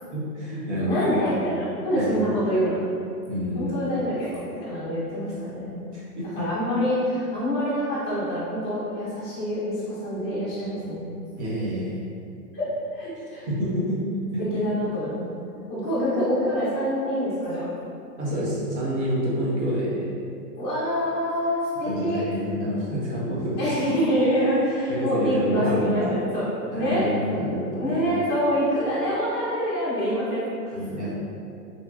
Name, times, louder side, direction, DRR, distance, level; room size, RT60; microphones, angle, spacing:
voice 1, 0.1-1.1 1.9-2.2 3.3-3.7 5.9-6.4 11.4-12.0 13.5-14.0 14.3-14.6 18.2-20.2 21.9-23.6 24.9-26.1 26.7-28.0 30.7-31.1, equal, 45° right, -7 dB, 0.7 m, -28 dB
voice 2, 0.8-2.8 3.2-5.8 6.3-11.0 12.5-13.5 14.5-15.2 15.7-17.7 20.5-22.2 23.6-26.0 26.3-27.4 27.7-30.7, equal, 15° left, -15 dB, 0.5 m, -26 dB
2.9 x 2.3 x 2.3 m, 2.5 s
hypercardioid pair, 175°, 48 cm